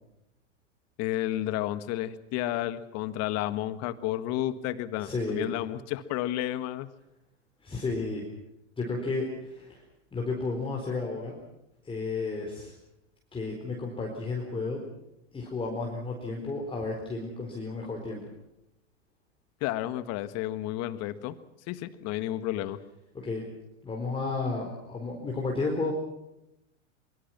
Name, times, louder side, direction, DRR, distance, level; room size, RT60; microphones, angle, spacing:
voice 1, 1.0-6.9 19.6-21.4 21.7-22.8, left 14 dB, 45° left, 12 dB, 1.6 m, -31 dB
voice 2, 5.0-5.5 7.6-8.2 8.8-9.8 10.1-11.4 11.8-12.7 13.3-14.8 15.3-18.2 23.2-23.4 23.8-25.9, left 3 dB, 15° left, -1 dB, 4.4 m, -32 dB
24.0 x 23.5 x 6.1 m, 0.84 s
hypercardioid pair, 115°, 38 cm